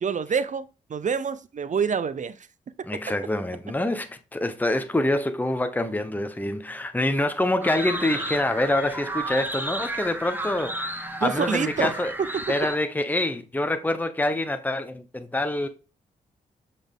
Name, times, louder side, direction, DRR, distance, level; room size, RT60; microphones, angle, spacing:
voice 1, 0.0-2.5 2.8-2.9 11.2-12.0 12.3-12.4, right 6 dB, 45° right, 0.6 m, -27 dB
voice 2, 2.9-12.1 12.5-15.7, left 1 dB, 10° left, 0.8 m, -26 dB
sound 1, 7.6-12.8, right 1 dB, 10° right, 1.3 m, -33 dB
6.8 x 4.1 x 3.6 m
hypercardioid pair, 40°, 17 cm